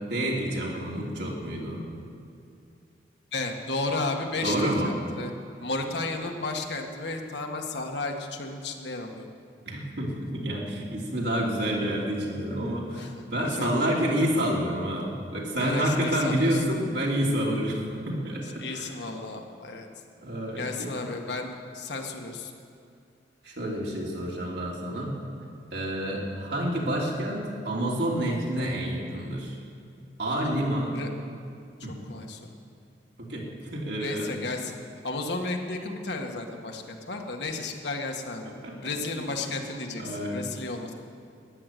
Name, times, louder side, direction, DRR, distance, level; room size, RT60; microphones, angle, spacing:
voice 1, 0.1-1.8 4.4-4.9 9.6-18.9 20.2-21.1 23.4-25.1 25.7-29.6 30.2-31.0 31.8-32.0 33.2-33.4 33.7-34.4 38.6-38.8 39.1-39.3 40.0-40.4, right 1 dB, 60° right, -3 dB, 3.1 m, -28 dB
voice 2, 3.3-5.3 5.6-9.3 13.0-13.1 13.5-13.9 15.6-16.6 18.6-19.9 20.6-22.5 30.9-31.1 32.1-32.5 34.0-34.8 35.0-38.5 38.8-40.9, left 3 dB, 65° left, 2 dB, 1.7 m, -33 dB
13.5 x 11.0 x 9.3 m, 2.5 s
head